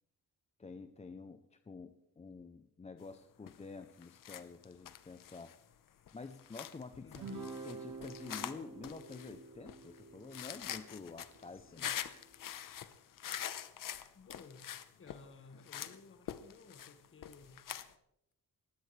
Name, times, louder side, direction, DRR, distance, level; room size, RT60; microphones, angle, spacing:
voice 1, 0.6-5.5 6.1-12.0, left 4 dB, 20° left, 9 dB, 0.6 m, -49 dB
sound 1, 3.5-3.6 4.0-17.9, left 10 dB, 65° left, 1.0 m, -45 dB
voice 2, 7.0-7.3 11.5-12.0 14.1-14.6 15.0-17.6, left 4 dB, 35° left, 8 dB, 1.7 m, -56 dB
Guitar, 7.1-11.8, right 3 dB, 65° right, 3.2 m, -49 dB
20.5 x 16.0 x 3.3 m, 0.79 s
cardioid pair, 140°, 36 cm